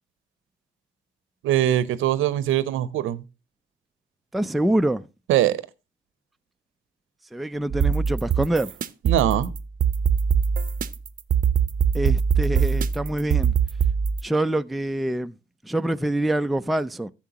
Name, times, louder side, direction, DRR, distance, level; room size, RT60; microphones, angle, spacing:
voice 1, 1.4-3.2 5.3-5.6 9.0-9.5, right 12 dB, 85° right, 0.7 m, -22 dB
voice 2, 4.3-5.1 7.3-8.7 11.9-13.5 14.2-15.3 15.6-17.1, right 1 dB, ahead, 0.4 m, -25 dB
sound 1, 7.7-14.2, right 7 dB, 45° right, 0.7 m, -22 dB
11.0 x 7.4 x 2.9 m
cardioid pair, 90°, 20 cm